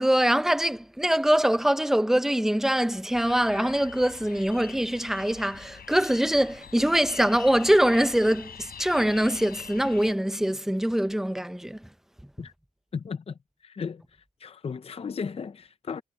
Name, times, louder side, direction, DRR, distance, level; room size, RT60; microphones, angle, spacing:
voice 1, 0.0-11.9, right 1 dB, ahead, 0.6 m, -23 dB
sound 1, 3.1-10.1, left 7 dB, 70° left, 4.4 m, -45 dB
voice 2, 12.9-14.0 14.4-16.0, left 6 dB, 40° left, 0.6 m, -35 dB
cardioid pair, 85°, 16 cm